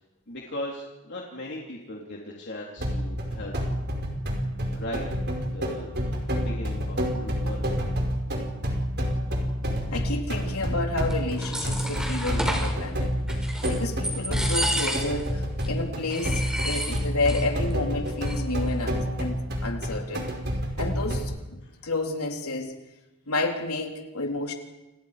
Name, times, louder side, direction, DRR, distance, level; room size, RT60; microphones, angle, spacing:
voice 1, 0.3-3.6 4.7-5.1 5.4-7.7 21.6-21.8, left 1 dB, 50° left, 3.4 m, -38 dB
sound 1, 2.8-21.2, equal, 45° right, 5.1 m, -29 dB
voice 2, 9.9-13.1 13.7-20.3 20.8-22.8 23.3-24.5, left 2 dB, 80° left, 3.8 m, -30 dB
sound 2, 11.1-12.7 13.3-13.8 14.0-15.3 15.6-15.7 16.1-17.5 17.7-17.8 18.1-18.6, equal, 5° right, 5.1 m, -31 dB
29.5 x 29.0 x 5.1 m
head